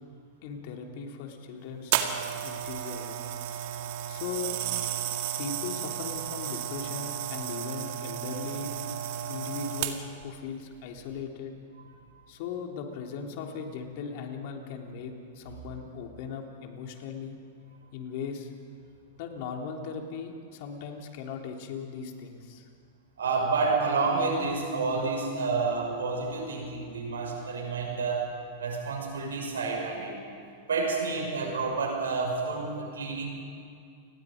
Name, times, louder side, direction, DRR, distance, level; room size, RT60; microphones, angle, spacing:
voice 1, 0.4-2.1 2.4-3.2 3.5-3.6 4.1-4.6 5.4-9.0 9.3-11.5 12.3-17.4 17.9-18.5 19.2-22.7, left 5 dB, 60° left, 2 dB, 3.3 m, -38 dB
sound 1, 1.9-10.2 11.0-11.2, right 11 dB, 60° right, 2.1 m, -33 dB
voice 2, 23.2-28.3 28.6-30.2 30.7-33.3, right 4 dB, 85° right, 1 dB, 6.1 m, -29 dB
29.0 x 20.5 x 5.2 m, 2.5 s
hypercardioid pair, 110°, 0 cm